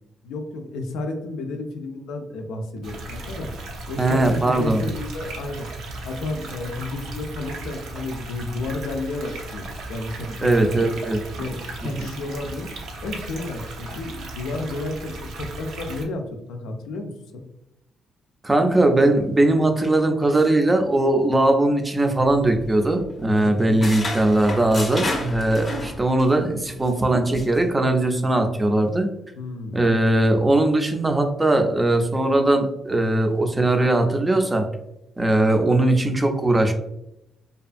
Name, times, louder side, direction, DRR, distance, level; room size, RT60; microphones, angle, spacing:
voice 1, 0.2-3.5 3.9-5.7 6.0-10.9 11.3-17.4 23.4-23.8 29.4-29.9, left 2 dB, 90° left, 4 dB, 0.4 m, -32 dB
sound 1, 2.8-16.0, right 2 dB, 75° right, 0.5 m, -36 dB
voice 2, 4.0-4.8 10.4-11.2 12.0-12.1 18.4-29.1 29.7-34.7 35.2-36.7, right 2 dB, 15° right, 4 dB, 0.4 m, -20 dB
sound 2, 22.2-23.1 23.4-26.4 26.7-26.9 27.3-27.6, left 1 dB, 30° left, 0.6 m, -31 dB
2.5 x 2.3 x 2.5 m, 0.84 s
cardioid pair, 90°, 0 cm